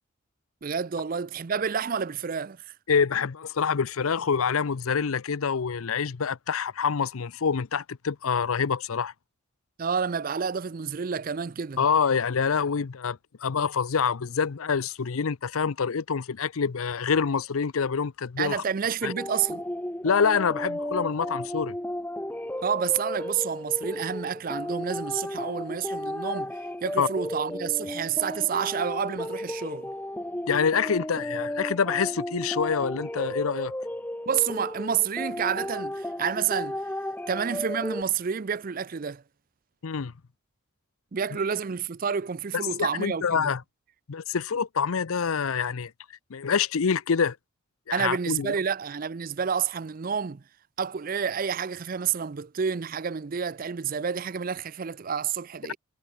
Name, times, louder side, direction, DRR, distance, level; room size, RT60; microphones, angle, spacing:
voice 1, 0.6-2.7 9.8-11.8 18.4-19.6 22.6-29.9 34.3-36.8 37.3-39.2 41.1-43.5 47.9-50.4 50.8-55.8, right 7 dB, 40° right, 0.4 m, -29 dB
voice 2, 2.9-9.1 11.8-18.6 19.0-19.1 20.0-21.7 27.0-27.1 30.5-33.7 39.8-40.1 42.8-43.6 44.1-45.9 46.3-47.4 47.9-48.5, left 6 dB, 80° left, 0.6 m, -26 dB
sound 1, 19.0-38.0, left 1 dB, 10° left, 0.8 m, -34 dB
head